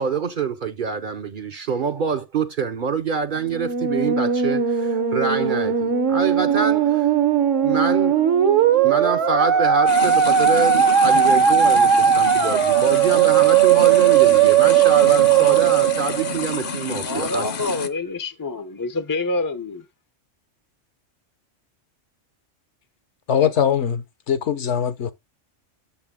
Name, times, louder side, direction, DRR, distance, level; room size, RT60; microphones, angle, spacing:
voice 1, 0.0-7.1 7.6-8.3 8.8-17.5, right 5 dB, 50° right, 0.7 m, -26 dB
Musical instrument, 3.4-16.8, right 8 dB, 75° right, 1.6 m, -18 dB
sound 1, 9.9-17.9, left 5 dB, 50° left, 0.8 m, -30 dB
voice 2, 17.0-19.8, left 2 dB, 25° left, 0.4 m, -27 dB
voice 3, 23.3-25.1, left 8 dB, 70° left, 1.1 m, -21 dB
8.5 x 6.6 x 3.6 m
omnidirectional pair, 1.3 m